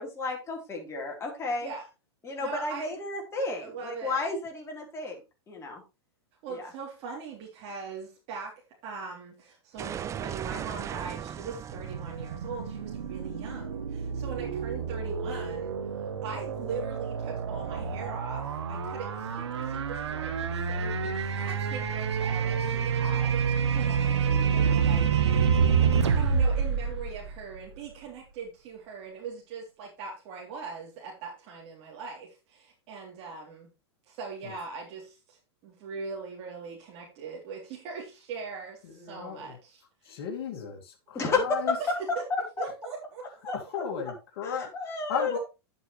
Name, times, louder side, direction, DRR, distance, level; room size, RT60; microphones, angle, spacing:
voice 1, 0.0-1.7 2.2-5.2 5.5-5.8 6.5-6.7 41.1-41.8 42.3-42.4 43.4-43.8 44.4-45.3, left 3 dB, 20° left, 0 dB, 4.0 m, -32 dB
voice 2, 2.4-2.9 3.6-4.2 6.4-8.5 8.8-25.5 26.0-33.7 34.1-40.2 41.8-42.2 42.6-43.2 43.7-43.8 45.3-45.4, right 5 dB, 45° right, -2 dB, 3.5 m, -41 dB
sound 1, 9.8-14.5, right 9 dB, 20° right, 0.5 m, -39 dB
sound 2, 11.7-27.9, right 6 dB, 90° right, 1.5 m, -28 dB
voice 3, 38.8-39.5 40.0-41.8 43.5-44.7 45.1-45.4, left 7 dB, 55° left, 0 dB, 2.5 m, -35 dB
11.0 x 8.0 x 3.3 m, 0.28 s
hypercardioid pair, 130°, 14 cm